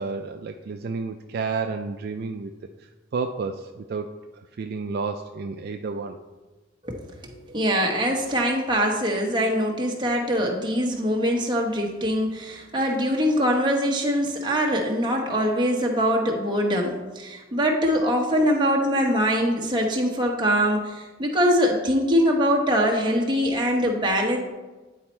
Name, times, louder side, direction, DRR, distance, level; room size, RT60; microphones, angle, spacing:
voice 1, 0.0-2.5 3.1-6.2, right 4 dB, 55° right, 5 dB, 0.3 m, -31 dB
voice 2, 6.8-24.4, equal, 25° right, 0 dB, 1.1 m, -23 dB
9.6 x 4.1 x 4.4 m, 1.2 s
head